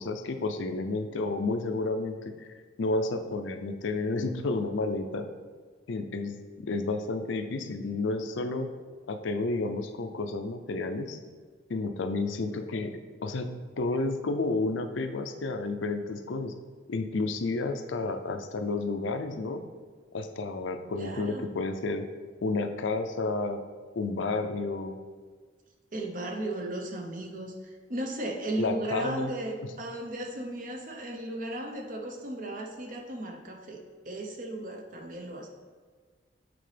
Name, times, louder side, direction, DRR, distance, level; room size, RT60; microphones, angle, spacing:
voice 1, 0.0-2.5 2.8-5.2 5.9-8.7 9.1-11.2 11.7-12.9 13.2-13.5 13.8-16.5 16.9-19.6 20.1-22.1 22.4-23.6 24.0-25.0 28.6-29.3, left 3 dB, 70° left, 7 dB, 0.5 m, -31 dB
voice 2, 21.0-21.5 25.9-35.5, right 1 dB, 45° right, 2 dB, 0.8 m, -36 dB
7.8 x 4.1 x 3.3 m, 1.6 s
head